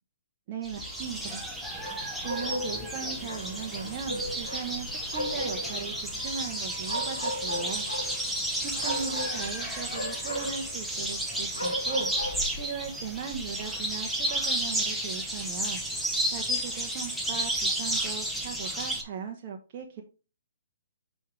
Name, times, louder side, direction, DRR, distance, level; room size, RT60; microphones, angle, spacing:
voice 1, 0.5-1.4 2.1-7.9 8.6-12.1 12.5-20.0, right 7 dB, 35° right, 2 dB, 0.9 m, -38 dB
sound 1, 0.6-19.0, right 1 dB, ahead, 1.2 m, -32 dB
sound 2, 0.8-12.4, equal, 70° left, 3.3 m, -37 dB
5.7 x 5.2 x 3.2 m, 0.33 s
figure-of-eight pair, 140°, 0 cm